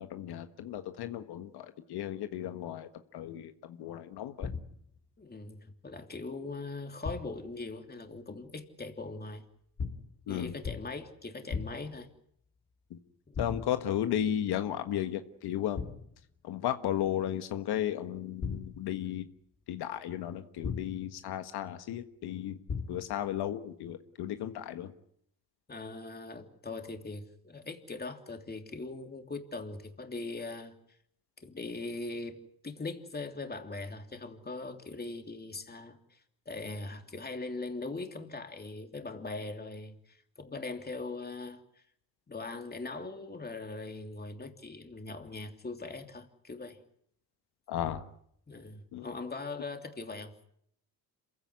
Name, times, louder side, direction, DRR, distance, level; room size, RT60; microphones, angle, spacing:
voice 1, 0.0-4.5 10.3-10.5 12.9-13.0 13.4-15.8 16.4-19.3 19.7-22.6 22.9-24.9 47.7-48.0 48.9-49.1, left 11 dB, 80° left, 9 dB, 1.6 m, -34 dB
sound 1, 4.4-5.0 7.0-7.5 9.8-10.2 10.6-11.1 11.5-12.0 13.3-13.9 15.8-16.2 18.4-19.0 20.6-21.2 22.7-23.2, left 5 dB, 40° left, 2.8 m, -38 dB
voice 2, 5.2-9.4 10.3-12.1 13.3-13.4 25.7-30.8 31.4-36.2 36.4-41.6 42.3-46.8 48.5-50.3, left 3 dB, 25° left, 6 dB, 3.0 m, -41 dB
27.5 x 16.0 x 9.7 m, 0.71 s
cardioid pair, 100°, 38 cm